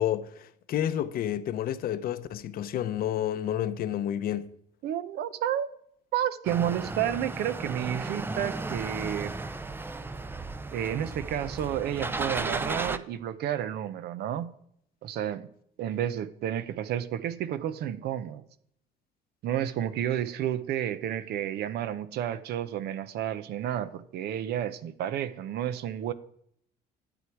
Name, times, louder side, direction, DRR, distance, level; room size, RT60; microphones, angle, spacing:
voice 1, 0.0-4.5, left 11 dB, 60° left, 0.7 m, -30 dB
voice 2, 4.8-5.7 6.1-9.4 10.7-14.5 15.0-15.5 15.8-18.4 19.4-26.1, right 10 dB, 70° right, 0.7 m, -31 dB
sound 1, 6.5-13.0, right 3 dB, 15° right, 0.5 m, -34 dB
11.5 x 8.0 x 4.7 m
cardioid pair, 110°, 17 cm